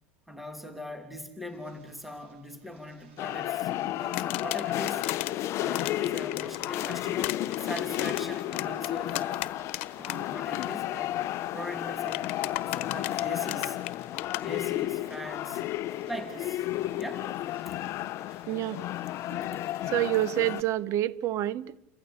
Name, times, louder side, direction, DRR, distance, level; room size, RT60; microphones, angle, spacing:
voice 1, 0.3-5.0 5.6-9.5 10.0-11.2 11.5-13.8 14.4-15.6 16.1-16.7 17.0-17.3 17.7-17.8, equal, ahead, 2.9 m, -41 dB
sound 1, 1.4-20.7, right 5 dB, 85° right, 7.6 m, -62 dB
sound 2, 3.2-20.6, left 14 dB, 45° left, 0.8 m, -32 dB
sound 3, 4.1-5.3 5.7-10.2 10.4-10.7 12.1-14.4, left 18 dB, 75° left, 1.2 m, -35 dB
voice 2, 18.5-18.8 19.3-19.5 19.9-21.8, right 14 dB, 45° right, 1.1 m, -28 dB
29.5 x 15.5 x 8.6 m
supercardioid pair, 115°, 7 cm